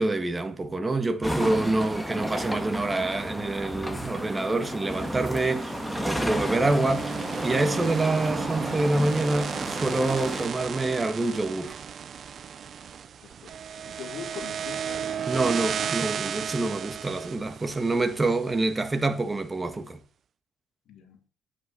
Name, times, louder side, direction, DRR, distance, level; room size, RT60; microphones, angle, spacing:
voice 1, 0.0-5.8 6.0-7.1 7.4-11.8 15.3-20.0, right 2 dB, 20° right, 1.8 m, -26 dB
sound 1, 1.2-10.5, equal, ahead, 1.8 m, -32 dB
sound 2, 4.9-19.1, right 7 dB, 50° right, 0.9 m, -34 dB
voice 2, 13.2-13.5 13.8-15.1 20.8-21.2, left 7 dB, 65° left, 4.8 m, -42 dB
9.8 x 8.5 x 6.6 m
cardioid pair, 110°, 0 cm